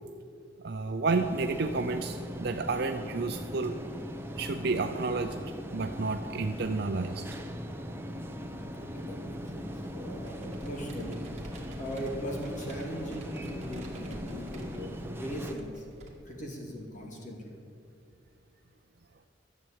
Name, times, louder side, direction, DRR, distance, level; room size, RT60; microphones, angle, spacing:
voice 1, 0.6-3.8 4.3-5.3 5.7-7.2, right 3 dB, 55° right, 6 dB, 0.5 m, -30 dB
sound 1, 1.1-15.5, equal, 10° right, 0.8 m, -40 dB
voice 2, 8.7-15.8 16.2-17.5, equal, 40° left, 0 dB, 2.4 m, -40 dB
Computer keyboard, 9.3-16.1, right 1 dB, 35° right, 2.2 m, -49 dB
12.5 x 7.9 x 8.8 m, 2.5 s
head